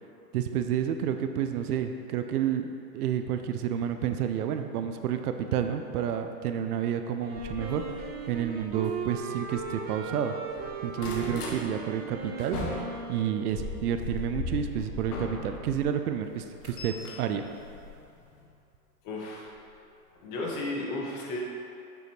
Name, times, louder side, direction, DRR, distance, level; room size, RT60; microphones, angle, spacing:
voice 1, 0.3-10.3 10.8-17.5, right 9 dB, 65° right, 7 dB, 0.7 m, -30 dB
Wind instrument woodwind instrument, 7.2-13.9, right 5 dB, 20° right, 0.6 m, -38 dB
sound 1, 7.3-10.1 10.4-11.6 12.0-15.8 16.2-18.4 19.5-19.7 20.1-20.2 20.5-20.6, left 3 dB, 65° left, 1.7 m, -39 dB
voice 2, 19.0-19.5 20.2-21.4, left 2 dB, 35° left, -3 dB, 1.7 m, -34 dB
7.6 x 7.0 x 3.3 m, 2.6 s
hypercardioid pair, 115°, 49 cm